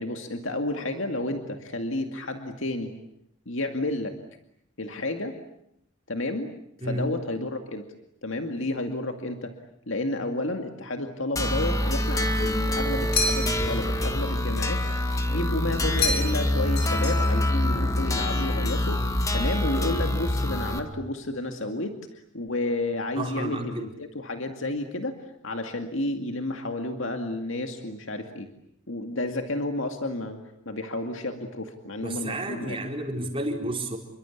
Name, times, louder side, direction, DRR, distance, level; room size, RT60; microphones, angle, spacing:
voice 1, 0.0-2.9 3.5-4.1 4.8-5.3 6.1-6.5 6.8-7.9 8.2-9.5 9.9-14.8 15.3-21.9 22.3-25.2 25.4-28.5 28.9-30.4 30.7-32.8, left 2 dB, 65° left, 5 dB, 2.3 m, -31 dB
Audacity Base Loop, 11.4-20.8, left 1 dB, 15° left, 1.9 m, -25 dB
sound 1, 13.1-13.8 16.0-16.5 16.8-17.5, left 3 dB, 45° left, 6.4 m, -28 dB
voice 2, 23.2-23.9 32.0-34.0, right 1 dB, 25° right, 1 dB, 4.6 m, -31 dB
28.5 x 24.0 x 8.5 m, 0.75 s
head